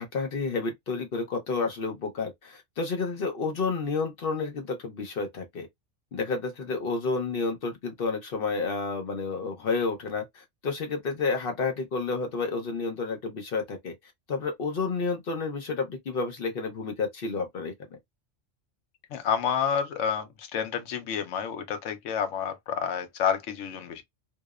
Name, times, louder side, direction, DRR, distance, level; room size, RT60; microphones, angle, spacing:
voice 1, 0.0-5.7 6.1-13.9 14.3-17.7, left 4 dB, 55° left, 0.8 m, -30 dB
voice 2, 19.1-24.0, left 7 dB, 80° left, 1.0 m, -29 dB
2.8 x 2.0 x 2.3 m
omnidirectional pair, 1.3 m